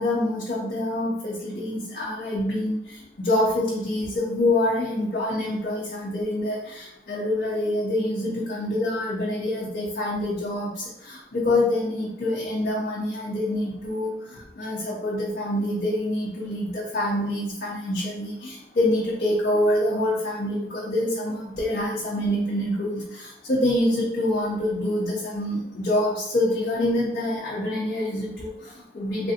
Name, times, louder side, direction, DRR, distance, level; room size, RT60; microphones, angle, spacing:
voice 1, 0.0-29.3, left 1 dB, 50° left, -6 dB, 0.6 m, -26 dB
3.2 x 2.5 x 2.7 m, 0.82 s
head